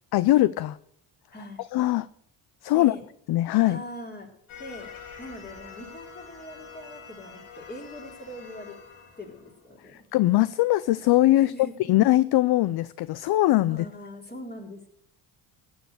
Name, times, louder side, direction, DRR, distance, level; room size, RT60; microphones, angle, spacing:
voice 1, 0.1-0.8 1.7-2.1 2.6-2.9 3.3-3.8 10.1-11.5 11.9-13.9, left 16 dB, 50° left, 18 dB, 0.5 m, -21 dB
voice 2, 1.3-1.6 2.7-3.0 3.6-4.3 4.6-4.9 5.2-8.8 9.2-10.0 11.3-11.7 13.7-14.9, equal, 20° left, 1 dB, 3.7 m, -42 dB
sound 1, 4.5-10.0, left 6 dB, 70° left, 2.1 m, -46 dB
15.0 x 7.3 x 7.9 m, 0.73 s
hypercardioid pair, 55°, 49 cm